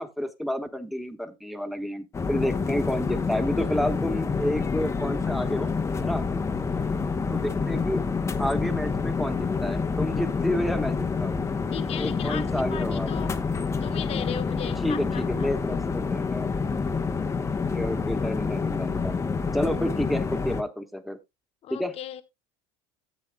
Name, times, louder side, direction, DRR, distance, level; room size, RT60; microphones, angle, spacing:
voice 1, 0.0-5.7 6.0-6.2 7.3-8.0 8.4-11.4 12.0-13.1 14.8-16.5 17.7-19.2 19.5-21.2 21.7-21.9, left 1 dB, ahead, 1.3 m, -30 dB
sound 1, 2.1-20.6, left 4 dB, 20° left, 0.8 m, -28 dB
voice 2, 11.7-13.4 13.8-15.5 21.6-22.2, left 10 dB, 45° left, 1.2 m, -37 dB
14.0 x 8.2 x 2.2 m
supercardioid pair, 105°, 14 cm